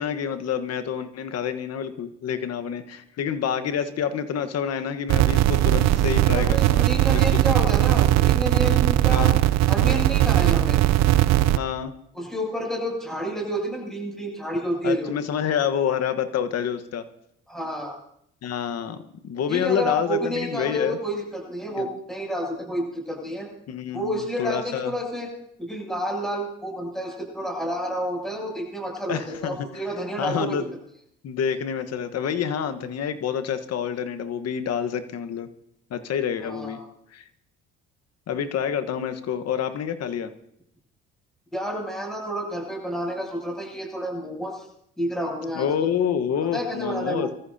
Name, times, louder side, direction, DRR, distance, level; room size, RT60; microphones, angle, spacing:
voice 1, 0.0-7.4 9.1-9.4 11.5-11.9 14.8-17.0 18.4-21.0 21.8-21.9 23.7-24.9 29.1-29.8 30.2-30.7 31.2-35.5 35.9-36.8 37.1-37.2 38.3-40.3 45.5-47.3, left 8 dB, 55° left, 10 dB, 1.3 m, -28 dB
sound 1, 5.1-11.6, right 14 dB, 65° right, 0.6 m, -19 dB
voice 2, 6.3-9.3 9.7-10.8 12.1-15.1 17.5-18.0 19.5-23.5 23.9-25.3 25.6-30.5 36.4-36.8 41.5-44.7 45.0-45.9 46.5-47.4, equal, ahead, -1 dB, 7.6 m, -29 dB
24.5 x 14.0 x 2.8 m, 0.71 s
supercardioid pair, 70°, 29 cm